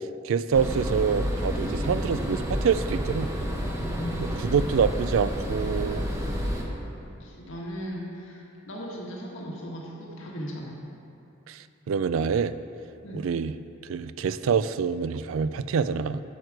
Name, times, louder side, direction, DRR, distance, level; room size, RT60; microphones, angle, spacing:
voice 1, 0.2-3.3 4.2-6.1 11.5-12.5 13.2-13.5 13.9-16.2, right 6 dB, 85° right, 14 dB, 0.4 m, -26 dB
sound 1, 0.5-6.6, equal, 15° right, 0.9 m, -30 dB
voice 2, 3.8-4.5 7.0-10.7 13.0-13.2, equal, 80° left, -3 dB, 1.6 m, -38 dB
11.0 x 6.4 x 4.7 m, 2.8 s
head